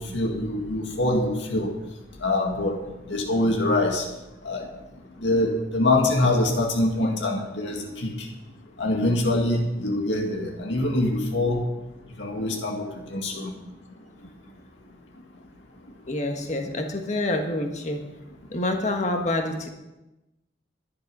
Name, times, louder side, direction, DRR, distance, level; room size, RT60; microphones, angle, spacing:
voice 1, 0.0-1.7 2.2-2.8 3.1-4.1 4.4-4.6 5.2-8.3 8.8-11.6 12.2-13.5, left 2 dB, 90° left, 0 dB, 2.1 m, -24 dB
voice 2, 16.1-18.0 18.5-19.7, left 2 dB, 40° left, 4 dB, 1.7 m, -27 dB
11.5 x 11.0 x 5.5 m, 0.98 s
head